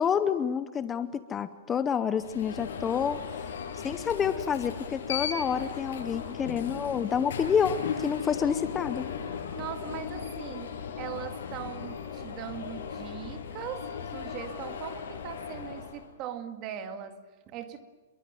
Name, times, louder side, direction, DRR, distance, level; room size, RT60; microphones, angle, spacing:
voice 1, 0.0-3.2 3.8-9.1, left 7 dB, 15° left, 0.8 m, -28 dB
Alarm, 2.2-16.1, left 7 dB, 70° left, 7.9 m, -37 dB
voice 2, 9.5-17.9, right 9 dB, 30° right, 2.0 m, -40 dB
28.0 x 23.0 x 7.7 m
supercardioid pair, 170°, 0 cm